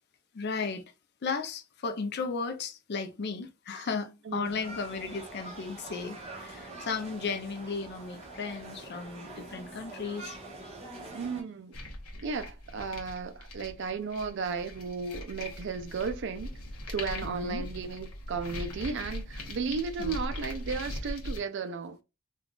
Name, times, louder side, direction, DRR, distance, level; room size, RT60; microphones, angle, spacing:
voice 1, 0.3-0.8 1.2-10.4 17.2-17.6 20.0-20.2, left 4 dB, 50° left, 0.5 m, -35 dB
sound 1, 4.4-11.4, right 2 dB, 30° right, 1.1 m, -45 dB
voice 2, 11.1-11.8 12.2-16.5 16.9-22.0, right 5 dB, 55° right, 0.4 m, -34 dB
sound 2, 11.7-21.4, left 1 dB, 85° left, 0.8 m, -40 dB
3.7 x 2.3 x 2.3 m
head